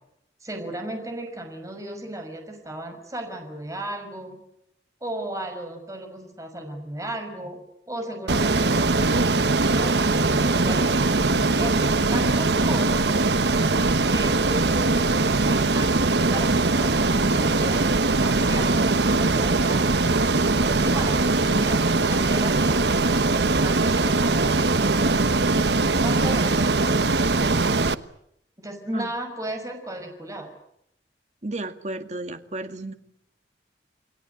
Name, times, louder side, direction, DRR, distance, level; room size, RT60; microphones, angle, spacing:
voice 1, 0.4-4.4 5.0-7.6 7.9-13.1 14.1-17.9 18.2-19.9 20.8-21.2 21.5-22.8 23.6-24.7 26.0-26.7 28.6-30.5, right 1 dB, 20° right, 5 dB, 6.0 m, -35 dB
Ocean, 8.3-27.9, right 3 dB, 70° right, 1.1 m, -21 dB
voice 2, 31.4-32.9, right 2 dB, 40° right, 8 dB, 2.1 m, -33 dB
29.0 x 20.5 x 8.1 m, 0.77 s
head